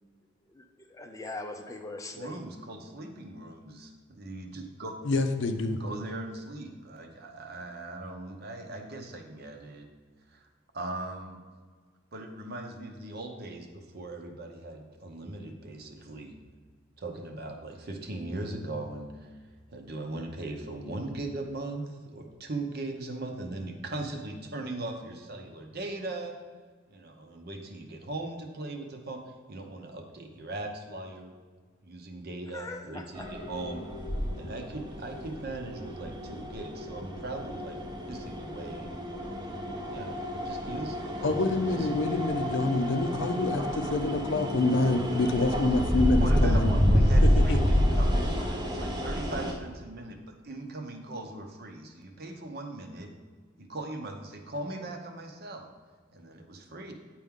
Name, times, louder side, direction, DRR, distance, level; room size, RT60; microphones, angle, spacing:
voice 1, 1.0-2.4 32.5-33.3, left 2 dB, 15° left, 5 dB, 0.5 m, -40 dB
voice 2, 2.1-4.9 5.8-9.9 10.3-10.5 10.7-11.4 12.1-16.3 17.0-19.3 19.7-26.4 26.9-29.2 29.5-31.3 31.8-33.8 34.3-37.8 38.1-38.9 39.9-41.9 46.1-53.1 53.6-55.7 56.1-56.9, right 2 dB, 50° right, 3 dB, 0.8 m, -39 dB
voice 3, 5.0-5.8 41.2-46.7 47.2-47.6, left 2 dB, 60° left, 7 dB, 0.6 m, -27 dB
sound 1, 33.2-49.5, equal, 20° right, 0.7 m, -28 dB
9.5 x 4.6 x 3.7 m, 1.6 s
head